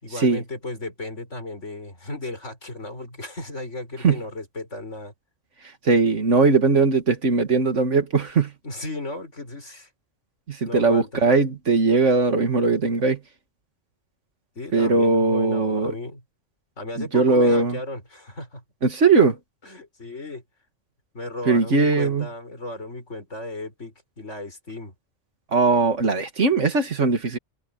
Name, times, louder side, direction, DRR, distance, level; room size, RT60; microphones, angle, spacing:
voice 1, 0.0-5.1 8.6-9.9 10.6-11.2 14.6-16.2 16.8-18.6 19.6-20.4 21.1-24.9, left 2 dB, 75° left, 5.9 m, -35 dB
voice 2, 5.8-8.5 10.5-13.2 14.7-15.9 17.0-17.8 18.8-19.4 21.5-22.3 25.5-27.4, right 3 dB, 80° right, 2.4 m, -19 dB
omnidirectional pair, 1.3 m